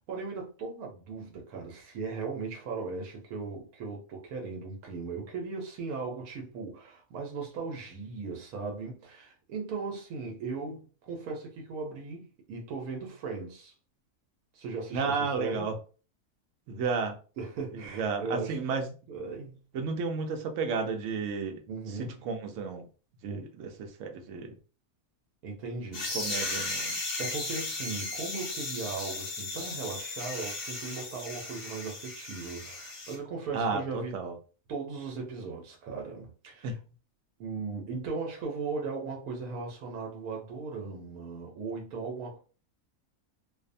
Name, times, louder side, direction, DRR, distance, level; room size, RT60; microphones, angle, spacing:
voice 1, 0.0-13.7 14.5-15.7 17.4-18.6 19.1-19.6 21.7-22.3 23.2-23.4 25.4-26.2 27.2-34.2 34.7-36.8 37.4-42.4, right 4 dB, 85° right, 1.1 m, -38 dB
voice 2, 14.9-15.8 16.7-17.2 17.7-18.9 19.7-21.6 22.0-22.9 23.2-24.5 25.9-27.0 33.5-34.3 36.6-36.8, right 4 dB, 65° right, 0.9 m, -32 dB
sound 1, 25.9-33.1, left 2 dB, 40° left, 0.6 m, -36 dB
2.7 x 2.0 x 2.5 m
omnidirectional pair, 1.5 m